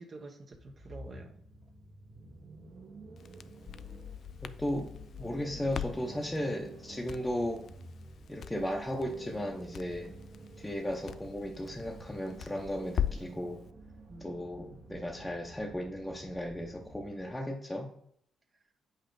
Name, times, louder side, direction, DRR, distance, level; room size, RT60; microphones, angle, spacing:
voice 1, 0.0-1.4 14.1-14.8, right 2 dB, 40° right, 3 dB, 0.8 m, -48 dB
sound 1, 0.5-17.4, right 2 dB, 60° right, 1.5 m, -50 dB
Crackle, 3.2-13.4, left 9 dB, 60° left, 0.3 m, -41 dB
voice 2, 4.4-4.9 5.2-7.7 8.3-10.1 10.6-13.6 14.2-17.9, equal, 10° left, -1 dB, 0.8 m, -35 dB
7.9 x 5.5 x 3.8 m, 0.69 s
cardioid pair, 90°, 0 cm